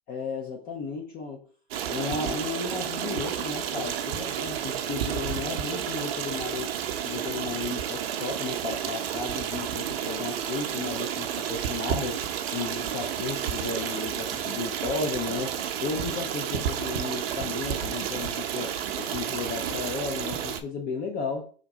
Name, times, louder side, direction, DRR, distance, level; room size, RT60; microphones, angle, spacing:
voice 1, 0.1-1.5 1.9-6.7 7.0-12.2 12.5-21.5, left 4 dB, 25° left, 0.5 m, -34 dB
Stream, 1.7-20.6, right 9 dB, 60° right, 0.7 m, -31 dB
3.6 x 2.7 x 4.7 m
hypercardioid pair, 125°, 33 cm